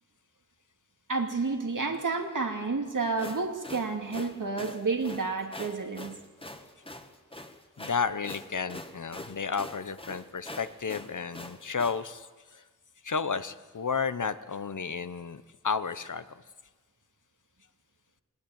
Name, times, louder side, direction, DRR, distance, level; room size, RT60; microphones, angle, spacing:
voice 1, 1.1-6.1, right 4 dB, 90° right, 3 dB, 2.5 m, -30 dB
sound 1, 3.0-12.0, left 1 dB, 15° left, 1.7 m, -44 dB
voice 2, 7.8-12.6 13.0-16.2, left 5 dB, 75° left, 13 dB, 1.0 m, -32 dB
20.0 x 19.0 x 9.0 m, 1.3 s
wide cardioid pair, 55°, 31 cm